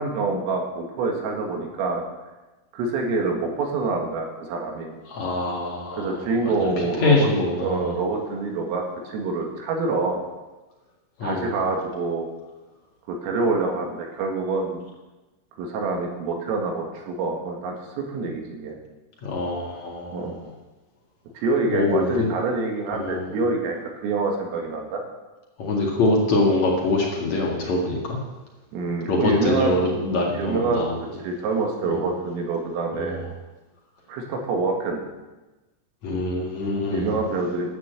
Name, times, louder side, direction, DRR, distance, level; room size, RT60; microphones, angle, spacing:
voice 1, 0.0-2.0 2.7-4.9 5.9-7.3 7.6-10.2 11.2-12.3 13.1-14.8 15.6-18.7 20.1-20.4 21.4-25.0 28.7-30.0 30.3-30.9 31.2-33.2 34.1-35.1 36.9-37.7, right 3 dB, 80° right, 2 dB, 4.5 m, -26 dB
voice 2, 5.1-6.1 6.5-6.7 7.0-8.0 11.2-11.5 19.2-20.3 21.7-22.3 22.9-23.3 25.6-28.2 29.1-30.9 31.9-32.0 33.0-33.1 36.0-37.1, left 2 dB, 50° left, -2 dB, 2.2 m, -24 dB
12.0 x 8.8 x 8.1 m, 1.1 s
omnidirectional pair, 5.9 m